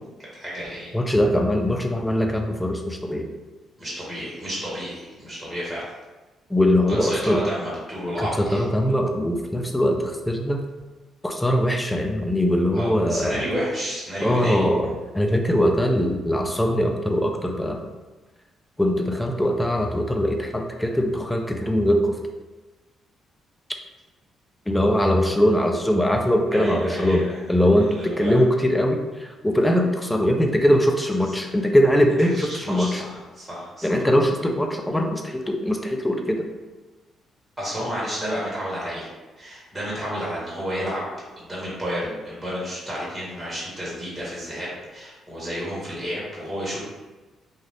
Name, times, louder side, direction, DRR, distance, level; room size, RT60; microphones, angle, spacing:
voice 1, 0.3-0.9 3.8-5.8 6.9-8.6 12.7-14.6 26.5-27.4 27.8-28.4 31.2-31.3 32.3-34.0 37.6-39.1 39.4-41.0 41.4-46.8, equal, 10° right, -7 dB, 1.3 m, -31 dB
voice 2, 0.9-3.3 6.5-7.4 8.2-10.6 11.2-13.4 14.2-14.9 15.1-17.8 18.8-22.2 24.7-27.2 27.5-29.0 29.4-33.0 33.8-36.5, equal, 10° left, 3 dB, 0.4 m, -21 dB
2.6 x 2.4 x 3.3 m, 1.2 s
cardioid pair, 90°, 0 cm